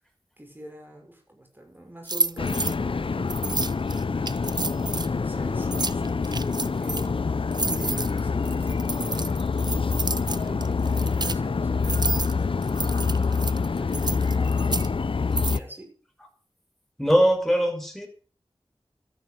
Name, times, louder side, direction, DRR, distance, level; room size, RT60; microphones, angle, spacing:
voice 1, 0.4-3.6 3.9-7.4 7.7-9.4 10.3-14.9 15.5-15.9 17.4-17.5, right 1 dB, 20° right, 2 dB, 6.2 m, -45 dB
sound 1, 2.1-2.7 3.3-5.1 5.6-7.1 7.5-11.4 11.8-12.3 12.6-14.9 15.4-15.6, right 3 dB, 50° right, 0.8 m, -30 dB
sound 2, 2.4-15.6, left 4 dB, 75° left, 0.6 m, -26 dB
voice 2, 17.0-18.1, equal, 5° left, 3 dB, 6.4 m, -21 dB
13.0 x 11.0 x 8.4 m, 0.40 s
wide cardioid pair, 50°, 9 cm